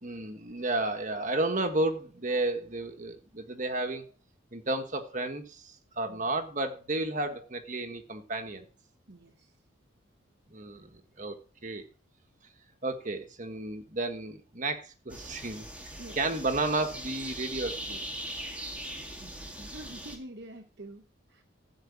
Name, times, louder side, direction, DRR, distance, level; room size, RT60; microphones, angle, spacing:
voice 1, 0.0-4.1 4.5-8.7 10.5-11.8 12.8-15.7 16.1-18.0, right 2 dB, 35° right, 5 dB, 1.5 m, -32 dB
voice 2, 9.1-9.5 16.0-16.2 19.2-21.4, right 1 dB, 55° right, 6 dB, 0.9 m, -47 dB
sound 1, 15.1-20.2, right 1 dB, 5° right, 2.0 m, -40 dB
13.0 x 4.7 x 8.3 m, 0.34 s
head